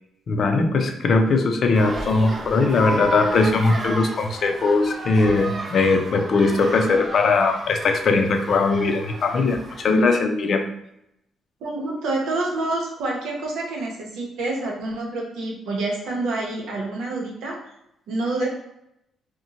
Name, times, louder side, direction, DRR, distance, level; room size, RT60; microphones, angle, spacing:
voice 1, 0.3-10.6, left 3 dB, 55° left, 5 dB, 0.4 m, -20 dB
sound 1, 1.7-10.0, right 2 dB, 40° right, 0.5 m, -33 dB
voice 2, 11.6-17.7 18.1-18.5, right 2 dB, 85° right, -1 dB, 0.8 m, -27 dB
2.8 x 2.1 x 2.6 m, 0.81 s
cardioid pair, 105°, 0 cm